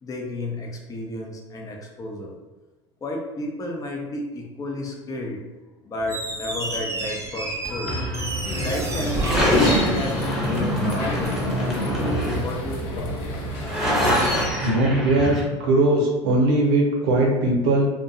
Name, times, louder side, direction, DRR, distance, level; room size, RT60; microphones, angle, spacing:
voice 1, 0.0-2.4 3.0-11.9 12.4-13.1, left 1 dB, 25° left, 1 dB, 0.6 m, -32 dB
Squeak, 6.0-10.7, right 2 dB, 20° right, 0.5 m, -31 dB
sound 1, 7.6-15.4, equal, ahead, 0.9 m, -25 dB
sound 2, 8.4-14.5, left 2 dB, 60° left, 0.6 m, -31 dB
voice 2, 14.6-17.8, right 2 dB, 55° right, -1 dB, 0.8 m, -20 dB
2.6 x 2.2 x 2.6 m, 1.1 s
figure-of-eight pair, 75°, 15 cm